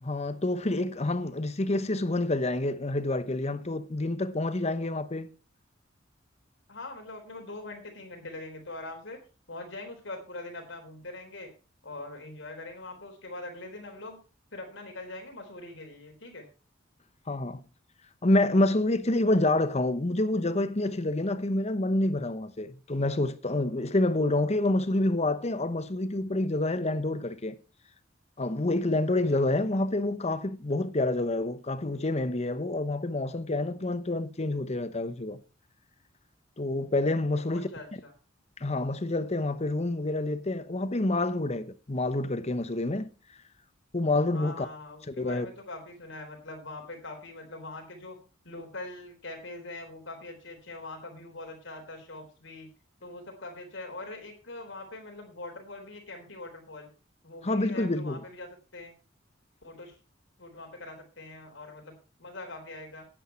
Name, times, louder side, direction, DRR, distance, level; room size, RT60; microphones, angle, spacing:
voice 1, 0.0-5.3 17.3-17.6 18.2-27.6 28.4-35.4 36.6-37.7 38.6-43.1 43.9-44.7 45.1-45.5 57.4-58.2, left 2 dB, 35° left, 0.9 m, -28 dB
voice 2, 6.7-9.2 9.5-11.5 11.8-14.2 14.5-16.5 29.3-29.4 37.3-38.1 44.3-48.2 48.4-52.7 53.0-56.9 57.2-58.9 59.6-59.9 60.4-63.1, left 2 dB, 70° left, 3.9 m, -42 dB
10.0 x 8.6 x 5.6 m
head